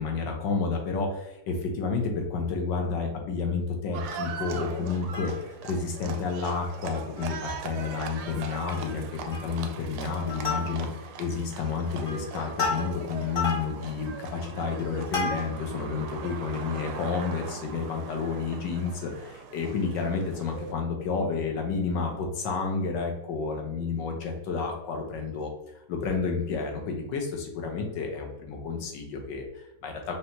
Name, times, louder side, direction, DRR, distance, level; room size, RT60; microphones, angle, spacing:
voice 1, 0.0-7.3 7.6-10.9 11.2-25.5 25.9-30.1, left 4 dB, 70° left, 2 dB, 1.4 m, -30 dB
Livestock farm animals working animals, 3.9-20.7, right 5 dB, 75° right, 0.9 m, -41 dB
Plucked string instrument, 4.9-5.7 6.1-6.2 6.5-6.7 7.2-7.8 8.1-8.2 8.6-9.0 9.3-9.7 10.1-11.1 11.6-15.7 16.3-16.4, left 4 dB, 35° left, 1.0 m, -33 dB
5.3 x 2.7 x 2.9 m, 0.90 s
omnidirectional pair, 2.1 m